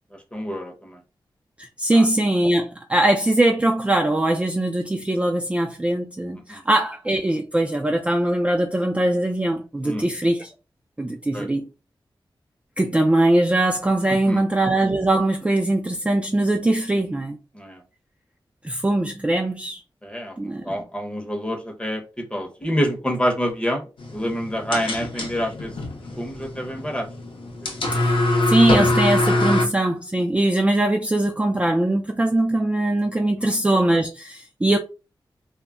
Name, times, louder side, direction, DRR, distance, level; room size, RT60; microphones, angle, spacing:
voice 1, 0.1-1.0 1.9-2.1 6.5-6.6 9.8-10.1 11.3-11.5 14.1-14.4 17.5-17.8 20.0-25.8 26.2-27.1 27.6-27.8 33.4-33.6, equal, 10° left, 0.7 m, -28 dB
voice 2, 1.6-10.5 11.0-11.7 12.8-17.4 18.6-19.8 20.4-20.8 27.9-28.1 28.5-34.8, right 1 dB, 15° right, 0.3 m, -21 dB
sound 1, 24.0-29.7, left 1 dB, 75° left, 0.7 m, -24 dB
2.2 x 2.0 x 3.5 m
wide cardioid pair, 90°, 9 cm